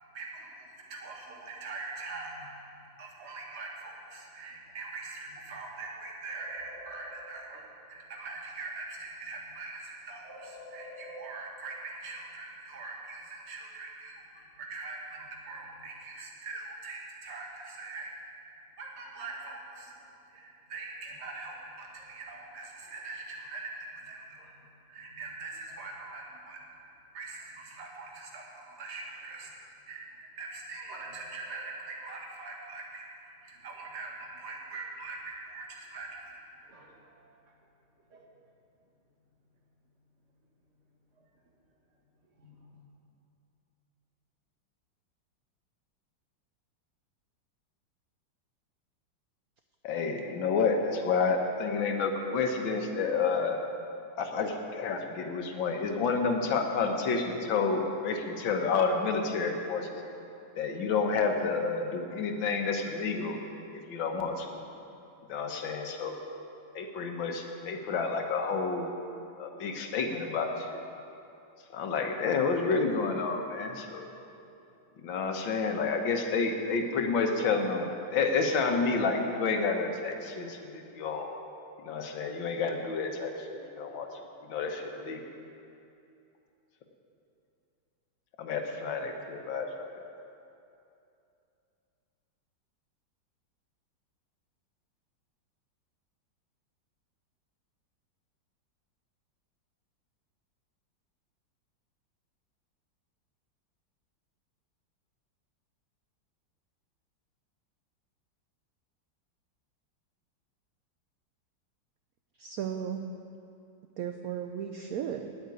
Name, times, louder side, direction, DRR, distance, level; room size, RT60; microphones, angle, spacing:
voice 1, 0.1-18.1 18.8-19.9 20.3-26.6 27.1-29.6 29.9-36.1 36.7-37.4 38.1-38.2 41.2-41.3 42.4-42.9, right 3 dB, 40° right, -1 dB, 1.7 m, -43 dB
voice 2, 49.8-53.6 54.2-60.0 60.6-63.4 63.7-64.6 65.3-66.2 66.8-68.9 69.4-70.8 71.7-74.1 75.0-81.3 81.8-84.1 84.5-85.2 88.4-89.8, left 4 dB, 90° left, 4 dB, 1.8 m, -30 dB
voice 3, 112.4-113.0 114.0-115.3, right 9 dB, 70° right, 6 dB, 0.9 m, -35 dB
9.5 x 8.7 x 9.4 m, 2.7 s
omnidirectional pair, 2.0 m